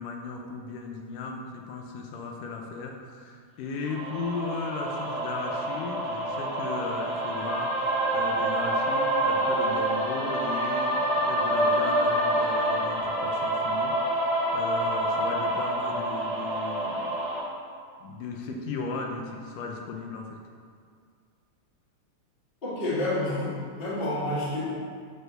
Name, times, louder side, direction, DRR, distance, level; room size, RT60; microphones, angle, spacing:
voice 1, 0.0-17.1 18.0-20.4, left 4 dB, 80° left, 1 dB, 2.2 m, -36 dB
sound 1, 3.8-17.4, right 1 dB, 15° right, 1.6 m, -27 dB
voice 2, 22.6-24.7, left 1 dB, 25° left, -8 dB, 1.5 m, -29 dB
7.0 x 4.4 x 6.4 m, 2.1 s
omnidirectional pair, 3.8 m